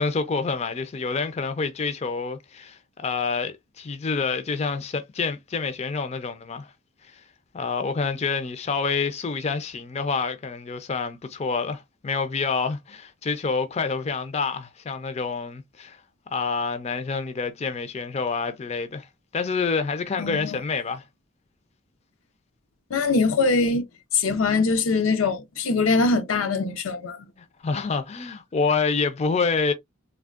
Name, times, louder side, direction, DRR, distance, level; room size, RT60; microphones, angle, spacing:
voice 1, 0.0-6.7 7.0-7.2 7.5-16.0 16.3-19.1 19.3-21.0 27.6-29.7, left 4 dB, 30° left, 0.4 m, -27 dB
voice 2, 20.2-20.6 22.9-23.8 24.1-27.3, left 3 dB, 90° left, 0.5 m, -22 dB
3.4 x 2.1 x 2.3 m
head